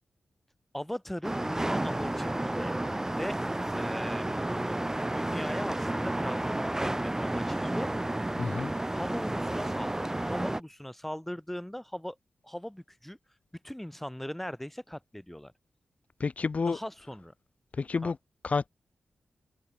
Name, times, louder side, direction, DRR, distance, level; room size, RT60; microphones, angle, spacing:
voice 1, 0.7-2.8 3.2-3.4 3.8-7.9 8.9-12.2 12.4-13.2 13.6-15.5 16.7-17.3 18.0-18.1, equal, 5° left, 2.0 m, -39 dB
sound 1, 1.2-10.6, right 1 dB, 15° right, 1.0 m, -31 dB
voice 2, 8.4-8.7 16.2-16.8 17.7-18.2 18.4-18.7, left 4 dB, 50° left, 0.5 m, -29 dB
cardioid pair, 50°, 3 cm